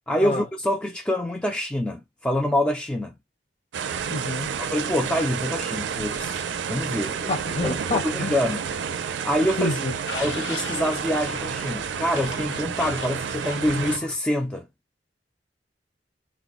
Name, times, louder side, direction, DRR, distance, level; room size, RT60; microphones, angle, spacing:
voice 1, 0.1-3.1 4.6-7.4 7.6-8.7 9.2-9.8 10.1-14.7, left 1 dB, 5° left, 0.3 m, -26 dB
sound 1, 3.7-14.0, right 7 dB, 85° right, 0.4 m, -30 dB
voice 2, 4.1-4.6 7.3-8.3 9.6-10.0, left 2 dB, 35° left, 0.7 m, -28 dB
sound 2, 7.2-8.5 8.8-14.2, left 2 dB, 75° left, 0.9 m, -39 dB
2.2 x 2.1 x 3.8 m
head